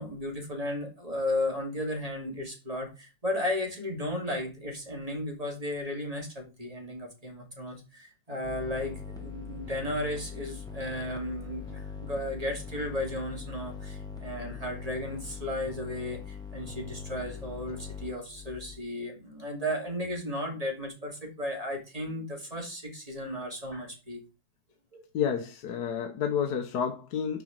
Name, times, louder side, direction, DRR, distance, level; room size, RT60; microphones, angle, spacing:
voice 1, 0.0-24.2 24.9-25.0, left 1 dB, 20° right, 2.7 m, -34 dB
sound 1, 8.4-18.8, left 6 dB, ahead, 1.3 m, -41 dB
voice 2, 25.1-27.4, left 7 dB, 60° left, 1.5 m, -30 dB
6.9 x 5.0 x 6.5 m
omnidirectional pair, 2.0 m